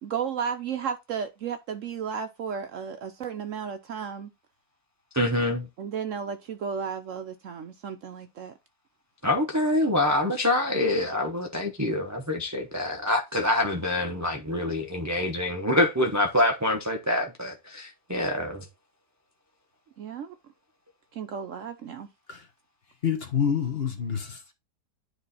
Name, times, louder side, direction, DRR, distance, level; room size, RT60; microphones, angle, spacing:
voice 1, 0.0-4.3 5.8-8.5 20.0-20.3 21.1-22.1, right 7 dB, 60° right, 0.9 m, -33 dB
voice 2, 5.1-5.7 9.2-18.6, left 1 dB, 15° right, 0.6 m, -26 dB
voice 3, 23.0-24.5, left 7 dB, 40° left, 1.3 m, -27 dB
9.9 x 3.3 x 4.1 m
omnidirectional pair, 1.7 m